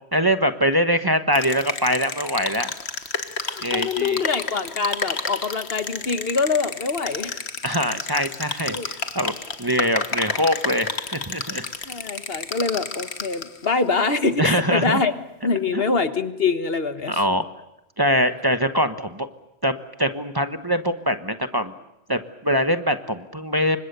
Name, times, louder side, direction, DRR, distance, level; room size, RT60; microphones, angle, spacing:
voice 1, 0.1-2.7 3.6-4.2 7.6-9.3 9.6-11.7 14.4-15.0 15.7-15.8 17.1-17.4 18.0-19.3 19.6-21.7 22.1-23.8, equal, 20° right, 8 dB, 1.1 m, -23 dB
sound 1, 1.3-13.7, left 4 dB, 80° left, 1.8 m, -31 dB
voice 2, 3.4-7.4 8.7-8.9 11.9-15.1 15.4-17.2, left 4 dB, 65° left, 10 dB, 1.7 m, -24 dB
29.0 x 25.0 x 6.9 m, 0.90 s
omnidirectional pair, 1.1 m